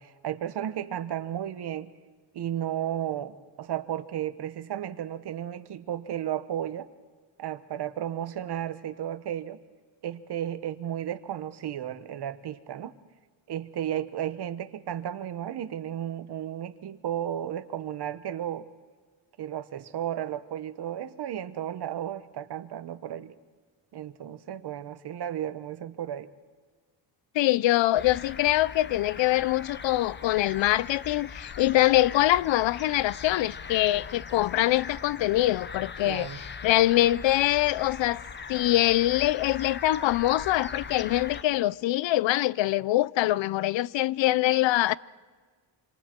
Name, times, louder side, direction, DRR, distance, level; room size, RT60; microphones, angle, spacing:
voice 1, 0.0-1.9 2.3-6.9 7.4-9.6 10.0-12.9 13.5-18.7 19.4-23.3 23.9-26.3 36.0-36.4, right 10 dB, 55° right, 1.1 m, -33 dB
voice 2, 27.3-38.2 38.5-45.0, left 15 dB, 70° left, 0.6 m, -24 dB
sound 1, 28.0-41.4, left 6 dB, 25° left, 0.6 m, -41 dB
27.5 x 26.0 x 4.5 m
cardioid pair, 150°, 46 cm